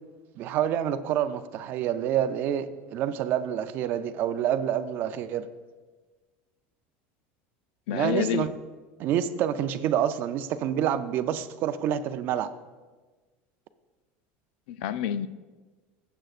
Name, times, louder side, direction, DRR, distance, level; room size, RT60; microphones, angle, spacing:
voice 1, 0.4-5.5 7.9-8.5 9.0-12.5, right 10 dB, 40° right, 11 dB, 0.4 m, -27 dB
voice 2, 7.9-8.5 14.7-15.3, left 10 dB, 75° left, 15 dB, 0.4 m, -28 dB
15.5 x 7.6 x 2.4 m, 1.3 s
cardioid pair, 165°, 5 cm